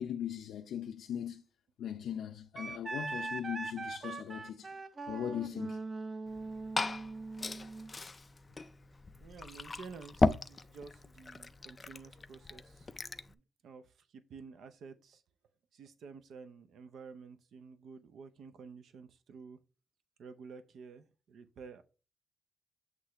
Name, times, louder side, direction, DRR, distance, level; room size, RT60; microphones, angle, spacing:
voice 1, 0.0-1.4 1.8-4.7 5.1-5.8, left 9 dB, 80° left, 0.6 m, -39 dB
Wind instrument woodwind instrument, 2.6-7.9, right 3 dB, 25° right, 0.6 m, -41 dB
voice 2, 4.2-4.8 9.2-12.9 13.3-15.2 15.7-19.6 20.2-21.8, right 5 dB, 65° right, 0.6 m, -51 dB
Liquid, 6.3-13.3, left 3 dB, 20° left, 0.3 m, -37 dB
8.3 x 3.2 x 5.6 m
wide cardioid pair, 165°, 0 cm